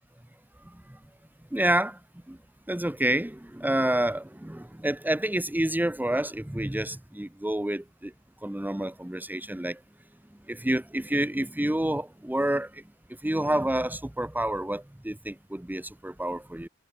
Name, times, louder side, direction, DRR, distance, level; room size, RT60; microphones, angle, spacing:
voice 1, 1.5-2.0 2.3-2.4 2.7-8.1 8.4-9.8 10.5-12.8 13.2-16.7, right 1 dB, 5° right, 2.3 m, -28 dB
wide cardioid pair, 110°, 29 cm